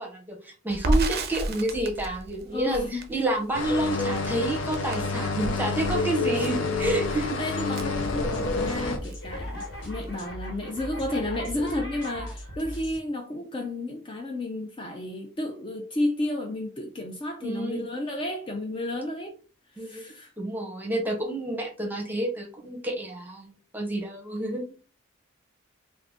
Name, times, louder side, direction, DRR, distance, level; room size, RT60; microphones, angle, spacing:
voice 1, 0.0-7.4 17.4-17.8 19.8-20.0 20.4-24.8, right 1 dB, 10° right, 0.6 m, -29 dB
Crackle, 0.7-8.8 9.1-9.2 9.5-10.3, right 1 dB, 50° right, 0.5 m, -32 dB
voice 2, 2.5-3.1 5.9-6.1 7.2-19.4 19.7-20.3, left 1 dB, 25° left, 0.3 m, -32 dB
sound 1, 3.5-9.0, left 3 dB, 75° left, 0.5 m, -28 dB
sound 2, 8.0-13.0, equal, 60° left, 1.1 m, -38 dB
2.5 x 2.4 x 3.4 m
head